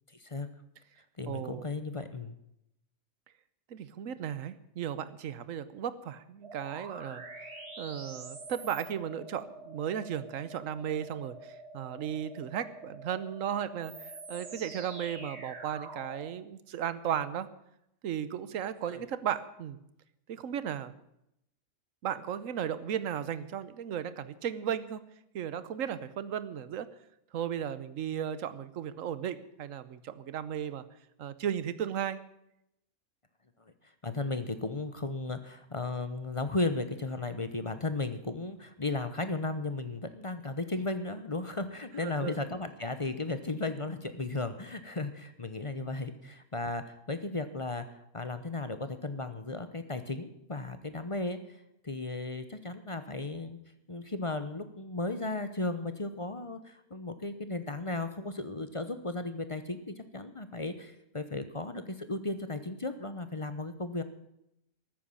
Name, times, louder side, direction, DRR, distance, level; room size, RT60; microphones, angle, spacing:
voice 1, 0.1-0.5 1.2-2.4 18.9-19.0 34.0-51.6 51.8-53.6 53.9-64.0, left 2 dB, 25° left, 10 dB, 0.7 m, -35 dB
voice 2, 1.3-1.7 3.7-7.2 7.8-17.5 18.0-19.8 20.3-20.9 22.0-25.0 25.3-26.9 27.3-30.8 31.2-32.2 42.0-42.4, right 9 dB, 65° right, 15 dB, 1.2 m, -35 dB
sound 1, 6.4-16.3, right 2 dB, 45° right, 1.9 m, -46 dB
14.0 x 9.3 x 8.6 m, 0.81 s
omnidirectional pair, 1.6 m